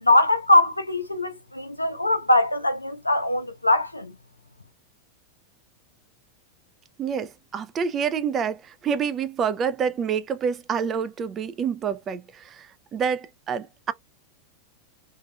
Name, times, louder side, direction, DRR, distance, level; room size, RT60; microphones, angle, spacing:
voice 1, 0.0-4.1, left 1 dB, 85° left, 0.4 m, -21 dB
voice 2, 7.0-13.9, right 7 dB, 25° right, 0.4 m, -27 dB
2.6 x 2.2 x 2.4 m
figure-of-eight pair, 90°, 0 cm